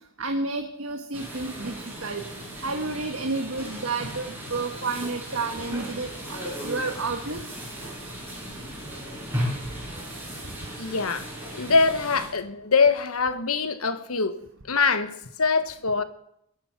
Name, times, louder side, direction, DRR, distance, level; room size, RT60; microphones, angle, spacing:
voice 1, 0.2-2.2 2.6-7.4, right 3 dB, 75° right, 1.4 m, -31 dB
sound 1, 1.1-12.3, equal, 10° right, 6.0 m, -36 dB
voice 2, 10.8-11.3 11.5-14.4 14.7-16.0, left 4 dB, 85° left, 1.2 m, -23 dB
22.5 x 10.0 x 6.0 m
head